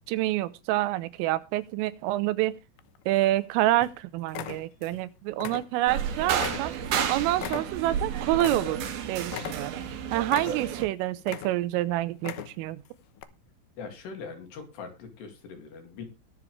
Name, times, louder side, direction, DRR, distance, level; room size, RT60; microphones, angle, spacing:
voice 1, 0.1-2.5 3.1-6.7 7.1-8.8 9.1-9.8 10.1-12.8, right 15 dB, 90° right, 15 dB, 3.5 m, -27 dB
sound 1, 2.8-3.4 3.8-4.0 4.3-5.0 5.3-6.0 6.4-9.0 9.3-9.9 10.3-10.8 11.2-11.8 12.1-12.7 13.2-13.3, left 13 dB, 75° left, 2.4 m, -38 dB
sound 2, 5.9-10.9, right 8 dB, 65° right, 3.0 m, -31 dB
voice 2, 13.8-16.0, left 5 dB, 60° left, 5 dB, 4.3 m, -41 dB
21.0 x 7.1 x 3.3 m, 0.27 s
omnidirectional pair, 5.7 m